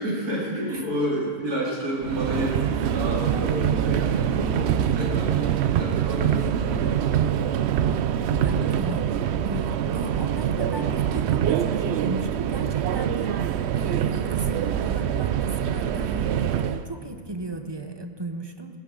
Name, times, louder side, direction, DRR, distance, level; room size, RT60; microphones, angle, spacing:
voice 1, 0.0-7.7 8.2-8.5 9.8-10.0, equal, 85° right, -4 dB, 3.7 m, -30 dB
Subway metro underground, 2.0-16.8, right 9 dB, 65° right, 0.6 m, -24 dB
voice 2, 4.9-5.2 8.4-9.1 9.4-18.8, right 2 dB, 30° right, 6 dB, 0.5 m, -36 dB
19.0 x 10.5 x 6.4 m, 2.2 s
omnidirectional pair, 1.6 m